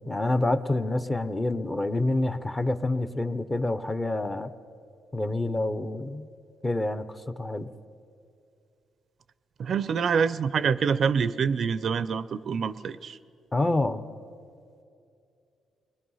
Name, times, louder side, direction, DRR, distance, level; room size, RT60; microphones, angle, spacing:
voice 1, 0.0-4.5 5.1-6.3 6.6-7.7 13.5-14.0, left 2 dB, 15° left, 12 dB, 0.7 m, -27 dB
voice 2, 9.6-13.2, right 6 dB, 45° right, 15 dB, 0.5 m, -26 dB
30.0 x 21.5 x 5.6 m, 2.5 s
cardioid pair, 150°, 0 cm